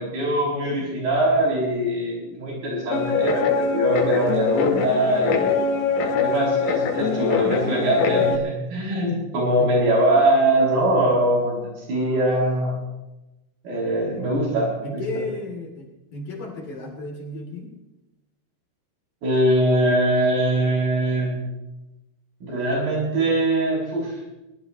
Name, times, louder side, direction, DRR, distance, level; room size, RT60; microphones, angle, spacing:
voice 1, 0.0-5.7 6.0-12.8 13.6-15.0 19.2-21.4 22.4-24.2, right 1 dB, 60° right, -4 dB, 9.1 m, -22 dB
Guitar, 2.9-8.4, left 6 dB, 85° left, 4.3 m, -23 dB
voice 2, 14.0-14.4 14.8-17.7, left 2 dB, 55° left, 0 dB, 4.5 m, -34 dB
23.0 x 19.5 x 3.1 m, 0.98 s
omnidirectional pair, 5.0 m